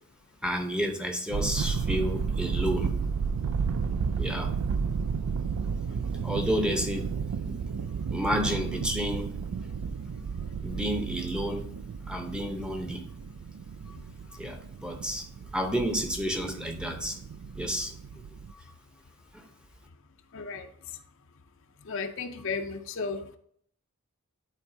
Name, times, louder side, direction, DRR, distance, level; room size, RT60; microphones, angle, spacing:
voice 1, 0.4-2.9 4.2-4.5 6.2-7.1 7.4-7.5 8.1-9.4 10.6-11.7 12.1-13.1 14.4-15.2 15.5-17.2 17.5-17.9 19.3-19.4, equal, 5° right, 4 dB, 0.7 m, -30 dB
sound 1, 1.3-18.5, right 5 dB, 80° right, 0.4 m, -32 dB
voice 2, 20.3-20.7 21.8-23.4, left 4 dB, 60° left, 7 dB, 0.6 m, -34 dB
10.5 x 4.6 x 2.7 m, 0.64 s
head